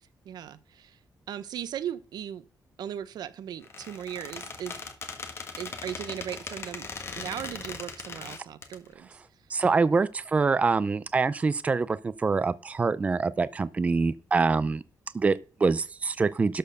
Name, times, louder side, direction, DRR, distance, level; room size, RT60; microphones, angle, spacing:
voice 1, 0.2-1.0 1.3-2.4 2.8-4.7 5.6-6.9 7.2-9.1, right 10 dB, 85° right, 0.9 m, -37 dB
Squeak, 3.6-8.8, left 4 dB, 40° left, 1.6 m, -39 dB
voice 2, 9.5-14.8 15.1-16.6, right 4 dB, 20° right, 0.4 m, -25 dB
12.5 x 4.5 x 6.5 m
wide cardioid pair, 175°, 7 cm